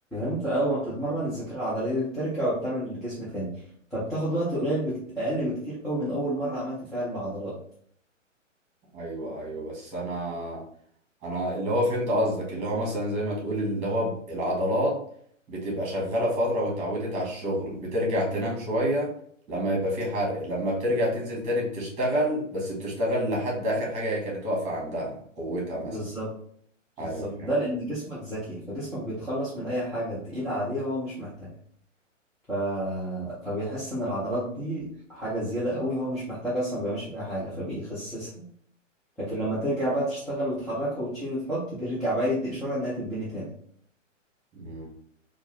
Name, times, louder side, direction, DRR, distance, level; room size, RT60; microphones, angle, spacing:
voice 1, 0.1-3.5 3.9-7.6 25.9-26.3 27.0-31.5 32.5-38.4 39.2-43.5, right 1 dB, ahead, -13 dB, 0.4 m, -30 dB
voice 2, 8.9-10.6 11.2-15.0 15.5-19.1 19.5-26.0 27.0-27.5 44.5-44.9, equal, 20° right, -3 dB, 1.6 m, -28 dB
4.4 x 2.4 x 3.2 m, 0.62 s
figure-of-eight pair, 120°, 38 cm